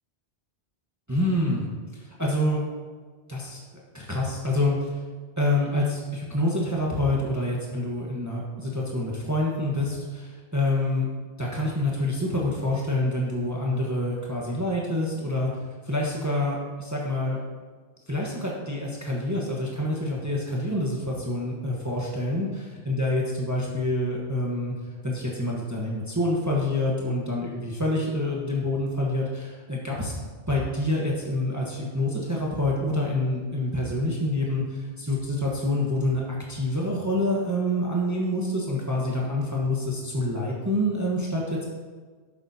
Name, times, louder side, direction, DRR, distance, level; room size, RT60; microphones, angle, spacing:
voice 1, 1.1-1.6 1.9-2.6 3.3-5.0 5.4-11.1 11.4-15.5 15.8-17.4 18.1-24.7 25.0-30.1 30.5-41.6, left 1 dB, 15° right, -3 dB, 1.2 m, -27 dB
10.5 x 8.0 x 2.8 m, 1.5 s
omnidirectional pair, 1.1 m